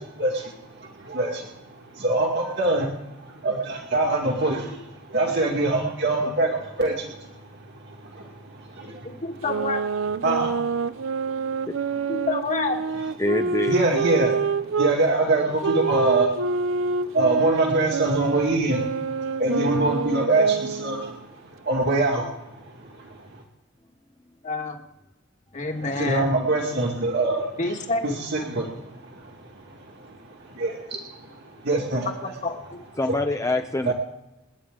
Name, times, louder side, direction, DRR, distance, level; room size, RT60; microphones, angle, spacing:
voice 1, 2.0-2.9 3.4-4.6 5.1-6.5 6.8-6.9 10.2-10.5 13.7-14.3 14.8-16.3 17.1-18.8 19.4-21.0 21.7-22.2 26.0-27.5 28.0-28.6 30.6-30.7 31.7-32.1 33.1-33.2 33.9-34.0, right 2 dB, 60° right, 0 dB, 2.2 m, -22 dB
voice 2, 9.0-9.8 12.1-12.8 24.4-24.8 25.5-26.3 27.6-28.2 32.4-32.6, left 3 dB, 40° left, 3 dB, 1.9 m, -27 dB
sound 1, 9.4-15.0 15.6-21.2, right 5 dB, 80° right, 0.6 m, -27 dB
voice 3, 13.2-13.8 33.0-33.9, left 2 dB, 15° left, 6 dB, 0.6 m, -25 dB
27.5 x 9.7 x 3.8 m, 0.99 s
head